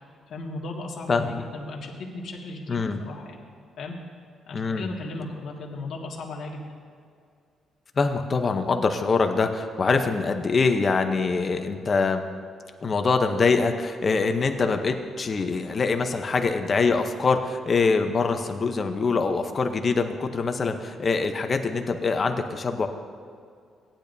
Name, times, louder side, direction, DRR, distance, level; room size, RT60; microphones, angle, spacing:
voice 1, 0.3-3.3 3.8-3.9 4.5-6.8, left 2 dB, 55° left, -1 dB, 1.7 m, -36 dB
voice 2, 1.1-1.4 2.7-3.0 4.5-4.9 8.0-12.3 12.8-22.9, left 4 dB, 30° left, 6 dB, 0.8 m, -24 dB
17.5 x 10.5 x 2.7 m, 2.3 s
cardioid pair, 155°, 0 cm